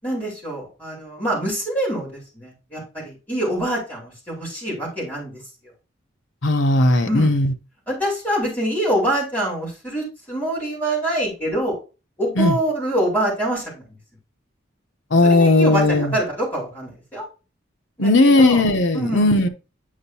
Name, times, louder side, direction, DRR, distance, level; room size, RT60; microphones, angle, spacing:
voice 1, 0.0-5.7 7.0-7.3 7.9-11.8 12.2-13.8 15.2-17.2 18.0-18.7 18.9-19.4, right 1 dB, 10° left, 4.4 m, -25 dB
voice 2, 6.4-7.5 12.4-12.5 15.1-16.1 18.0-19.5, left 2 dB, 65° left, 0.9 m, -16 dB
8.7 x 5.4 x 2.8 m
head